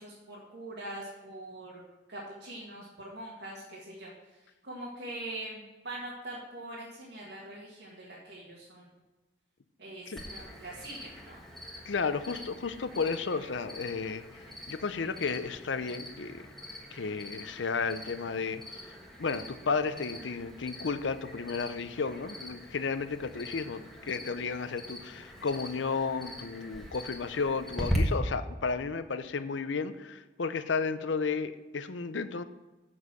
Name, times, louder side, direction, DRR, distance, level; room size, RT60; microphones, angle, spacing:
voice 1, 0.0-1.8 2.1-4.1 4.6-8.9 9.8-11.4, right 1 dB, 70° right, -4 dB, 1.9 m, -43 dB
Cricket, 10.2-28.0, equal, ahead, 1.4 m, -43 dB
voice 2, 11.9-14.2 14.7-16.4 16.9-18.6 19.2-32.4, left 4 dB, 85° left, 12 dB, 0.6 m, -33 dB
7.2 x 6.6 x 7.6 m, 1.1 s
head